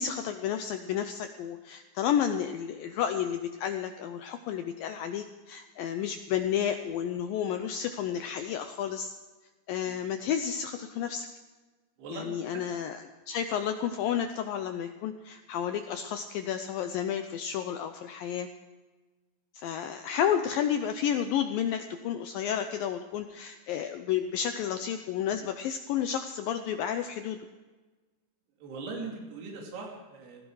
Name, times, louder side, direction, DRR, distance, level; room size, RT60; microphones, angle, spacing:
voice 1, 0.0-9.1 9.7-11.3 12.1-18.5 19.5-27.4, left 9 dB, 80° left, 7 dB, 2.0 m, -31 dB
voice 2, 12.0-12.7 28.6-30.5, right 4 dB, 70° right, 0 dB, 4.7 m, -40 dB
18.0 x 15.5 x 4.8 m, 1.3 s
omnidirectional pair, 4.9 m